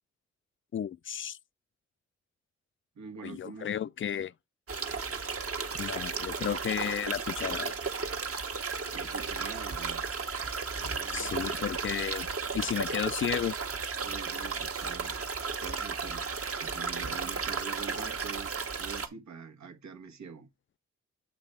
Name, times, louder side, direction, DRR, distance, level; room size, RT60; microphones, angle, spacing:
voice 1, 0.7-1.4 3.2-4.3 5.8-7.7 11.1-12.3 12.5-13.6, left 9 dB, 45° left, 0.4 m, -33 dB
voice 2, 3.0-3.7 8.9-10.1 10.7-11.6 14.0-15.2 15.6-16.3 16.6-18.5 18.8-20.5, right 6 dB, 75° right, 1.3 m, -45 dB
sound 1, 4.7-19.1, right 5 dB, 50° right, 1.3 m, -34 dB
7.5 x 3.4 x 5.4 m
cardioid pair, 50°, 29 cm